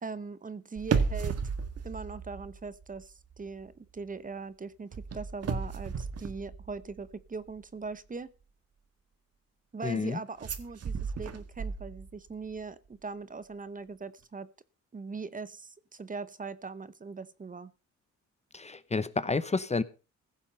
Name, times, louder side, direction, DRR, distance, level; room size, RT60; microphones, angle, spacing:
voice 1, 0.0-1.3 1.8-8.3 9.7-14.5 14.9-17.7, right 4 dB, 25° right, 1.0 m, -40 dB
sound 1, 0.8-3.0 3.3-3.6 4.9-7.1 10.4-12.3 12.6-12.7, right 5 dB, 55° right, 1.8 m, -34 dB
voice 2, 9.8-10.2 18.5-19.8, left 4 dB, 20° left, 0.9 m, -30 dB
15.5 x 7.2 x 5.6 m
cardioid pair, 90°, 30 cm